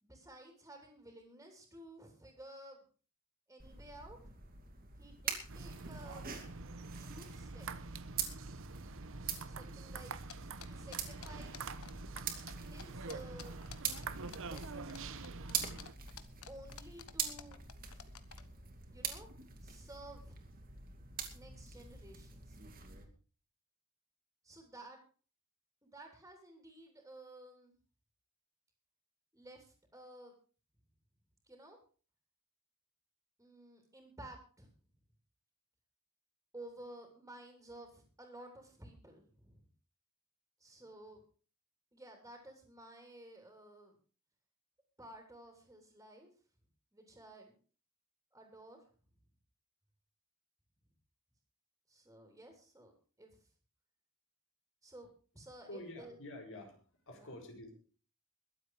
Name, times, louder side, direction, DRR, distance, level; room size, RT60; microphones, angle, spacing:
voice 1, 0.0-2.8 3.5-4.2 5.0-6.3 6.7-7.7 9.5-10.2 10.6-11.7 12.6-13.6 14.4-15.1 16.5-17.6 18.9-19.3 19.6-20.4 21.3-22.6 24.4-25.0 25.8-27.7 29.3-30.4 31.5-31.8 33.4-34.7 36.5-39.7 40.6-41.2 41.9-44.0 45.0-46.3 46.9-47.6 48.3-48.8 51.9-53.4 54.8-55.1 55.4-56.2 57.2-57.3, right 1 dB, 10° right, 2 dB, 3.3 m, -54 dB
sound 1, 3.6-23.0, right 7 dB, 40° right, 2.7 m, -45 dB
sound 2, 5.5-15.9, right 4 dB, 65° right, 1.0 m, -46 dB
sound 3, 10.3-12.2 12.5-12.6 12.8-18.4, left 8 dB, 80° left, 1.3 m, -51 dB
voice 2, 55.7-56.8 57.1-57.7, left 1 dB, 60° left, 2 dB, 5.4 m, -48 dB
22.0 x 8.2 x 4.8 m, 0.40 s
head